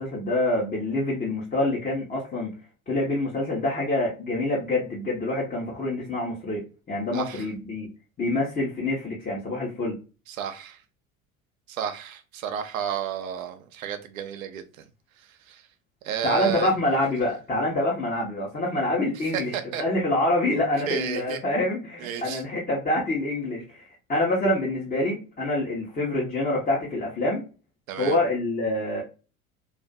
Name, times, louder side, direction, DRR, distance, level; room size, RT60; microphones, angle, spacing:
voice 1, 0.0-2.5 2.9-6.6 6.9-7.9 8.2-10.0 16.2-19.5 19.8-27.4 28.0-29.0, left 1 dB, 20° left, 0.9 m, -26 dB
voice 2, 7.1-7.5 10.3-10.8 11.7-14.8 15.2-15.6 16.0-16.7 19.2-19.8 20.5-20.6 20.9-21.4 22.0-22.4 27.9-28.2, right 9 dB, 75° right, 0.6 m, -32 dB
2.5 x 2.4 x 2.2 m
figure-of-eight pair, 70°, 41 cm